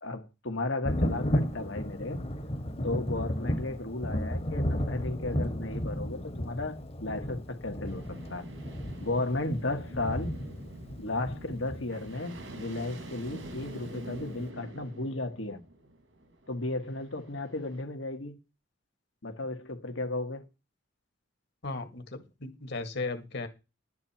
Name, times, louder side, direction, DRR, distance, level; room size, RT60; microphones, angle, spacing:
voice 1, 0.0-2.2 2.8-8.5 9.0-10.3 11.0-15.6 16.5-18.4 19.2-20.4, left 2 dB, 85° left, 2.1 m, -34 dB
Thunder, 0.8-12.3 13.6-13.7 14.2-14.3, equal, 30° left, 1.2 m, -33 dB
sound 1, 7.8-17.8, right 1 dB, 75° right, 2.1 m, -46 dB
voice 2, 21.6-23.5, left 3 dB, 60° left, 2.0 m, -36 dB
11.5 x 9.5 x 4.5 m
head